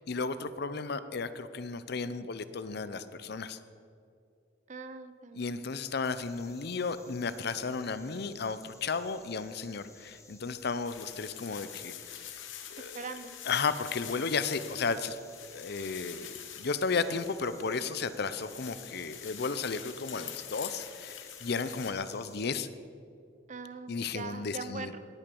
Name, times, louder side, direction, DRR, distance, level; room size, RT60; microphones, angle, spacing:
voice 1, 0.0-3.6 5.3-12.4 12.7-13.1 13.4-15.2 15.5-22.7 23.9-24.9, left 4 dB, 60° left, 13 dB, 0.6 m, -34 dB
voice 2, 4.7-5.8 12.9-13.3 23.5-25.0, right 4 dB, 40° right, 11 dB, 0.7 m, -42 dB
sound 1, 6.0-22.5, left 3 dB, 15° left, 1.4 m, -57 dB
sound 2, 10.9-21.9, left 10 dB, 85° left, 1.1 m, -46 dB
18.5 x 8.9 x 5.4 m, 2.4 s
head